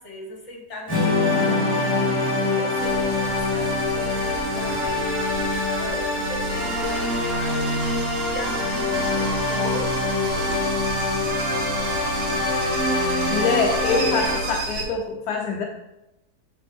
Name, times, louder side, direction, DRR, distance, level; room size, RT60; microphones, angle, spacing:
voice 1, 0.0-1.9 2.4-5.1 5.8-7.7 8.2-10.8, left 1 dB, 45° left, 0 dB, 2.3 m, -38 dB
Strum, 0.9-4.8, left 3 dB, 10° left, 2.6 m, -30 dB
sound 1, 0.9-14.4, left 2 dB, 55° right, 3.1 m, -25 dB
sound 2, 2.8-14.9, right 3 dB, 75° right, 1.7 m, -31 dB
voice 2, 13.0-15.6, left 4 dB, 75° left, 1 dB, 1.3 m, -25 dB
7.8 x 6.9 x 3.5 m, 0.94 s
omnidirectional pair, 1.7 m